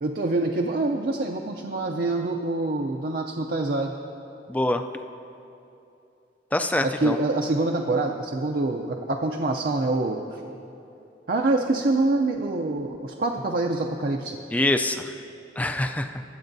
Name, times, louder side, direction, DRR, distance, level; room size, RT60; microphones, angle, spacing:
voice 1, 0.0-3.9 6.8-10.4 11.3-14.4, right 2 dB, 55° right, 2 dB, 0.5 m, -25 dB
voice 2, 4.5-4.8 6.5-7.2 14.5-15.1 15.6-16.2, left 1 dB, 10° left, 7 dB, 0.3 m, -25 dB
23.0 x 7.9 x 2.7 m, 2.8 s
head